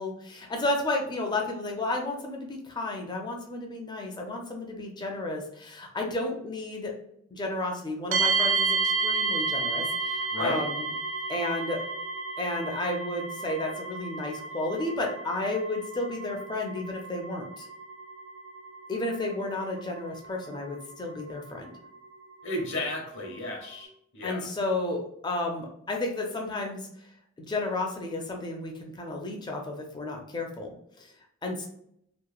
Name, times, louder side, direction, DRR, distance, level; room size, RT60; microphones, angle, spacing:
voice 1, 0.0-6.9 7.3-10.9 11.3-11.8 12.4-17.7 18.9-21.7 24.2-26.8 27.4-31.1 31.4-31.7, left 2 dB, 20° left, 1 dB, 0.4 m, -32 dB
sound 1, 8.1-23.8, right 4 dB, 60° right, 0.5 m, -33 dB
voice 2, 10.3-10.7 22.4-24.5, left 1 dB, 60° left, 0 dB, 0.8 m, -33 dB
2.9 x 2.0 x 2.3 m, 0.73 s
head